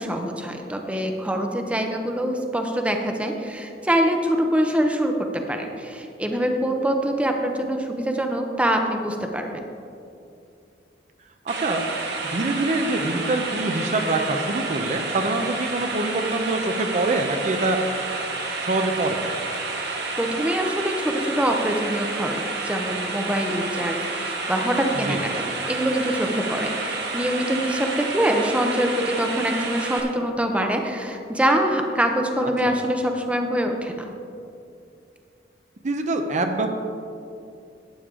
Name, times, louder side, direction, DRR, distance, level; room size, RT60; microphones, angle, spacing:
voice 1, 0.0-5.1 5.5-9.6 19.7-25.4 25.7-34.1, equal, 5° right, 3 dB, 0.7 m, -24 dB
voice 2, 11.5-11.8 12.3-17.8 18.6-19.3 25.0-25.2 32.7-32.8 35.8-36.7, right 2 dB, 45° right, 5 dB, 0.7 m, -24 dB
sound 1, 11.5-30.0, right 3 dB, 70° right, 1.5 m, -30 dB
12.0 x 8.6 x 3.8 m, 2.6 s
head